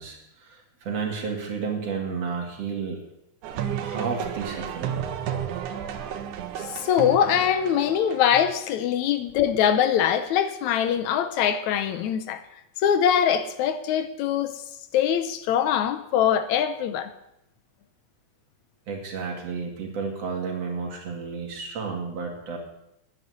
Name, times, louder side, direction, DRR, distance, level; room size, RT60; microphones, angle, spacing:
voice 1, 0.0-3.0 3.8-5.0 18.9-22.6, right 5 dB, 55° right, 3.3 m, -32 dB
sound 1, 3.4-8.6, right 9 dB, 85° right, 2.6 m, -32 dB
voice 2, 6.7-12.4 12.8-14.5 14.9-17.1, left 9 dB, 80° left, 2.1 m, -23 dB
9.7 x 9.5 x 9.4 m
omnidirectional pair, 3.4 m